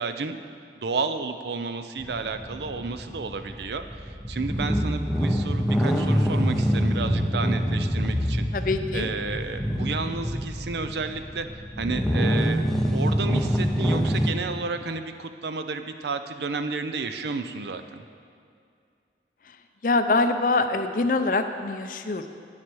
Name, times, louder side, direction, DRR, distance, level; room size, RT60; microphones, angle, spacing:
voice 1, 0.0-8.5 8.9-11.5 11.8-12.6 12.9-18.0, right 4 dB, 70° right, 9 dB, 0.5 m, -32 dB
sound 1, 2.0-14.3, equal, ahead, 0.6 m, -25 dB
voice 2, 8.5-9.1 19.8-22.3, left 3 dB, 50° left, 8 dB, 0.5 m, -24 dB
9.4 x 7.5 x 6.2 m, 2.3 s
head